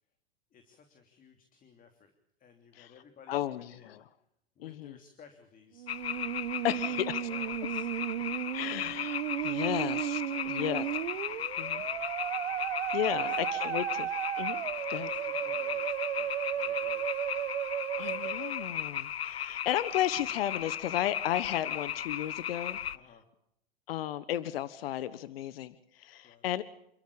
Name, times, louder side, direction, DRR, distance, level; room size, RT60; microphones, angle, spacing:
voice 1, 0.5-2.1 2.4-4.0 4.5-5.9 6.5-7.9 8.4-8.9 10.3-12.1 13.1-13.4 15.0-17.4 18.0-18.3 22.9-23.3 26.2-26.5, left 6 dB, 25° left, 6 dB, 3.0 m, -58 dB
voice 2, 3.3-4.0 4.6-4.9 6.6-7.2 8.5-10.2 10.5-10.8 11.6-11.8 12.9-14.1 14.4-14.6 14.9-15.1 18.0-22.8 23.9-26.6, left 12 dB, 70° left, 16 dB, 1.3 m, -34 dB
Musical instrument, 5.8-18.8, right 12 dB, 75° right, 1.4 m, -34 dB
sound 1, 5.9-23.0, left 10 dB, 90° left, 1.0 m, -36 dB
28.5 x 13.5 x 8.7 m, 0.80 s
hypercardioid pair, 115°, 31 cm